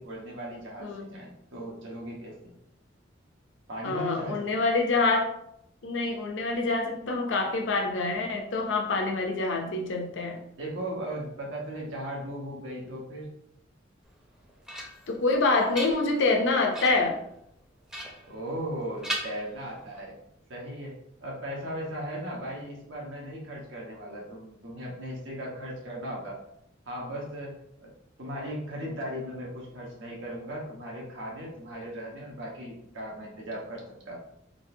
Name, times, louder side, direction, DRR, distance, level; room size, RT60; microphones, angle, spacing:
voice 1, 0.0-2.5 3.7-4.6 10.6-13.3 18.3-20.1 20.5-26.4 26.9-27.9 28.2-34.2, equal, 85° right, -3 dB, 1.1 m, -37 dB
voice 2, 3.8-5.3 5.8-10.4 15.1-17.2, left 3 dB, 75° left, 2 dB, 0.5 m, -26 dB
sound 1, 14.2-15.2 15.6-16.3 16.7-17.2 17.9-18.8 19.0-20.0, right 1 dB, 5° right, 0.5 m, -38 dB
3.8 x 2.5 x 2.7 m, 0.75 s
head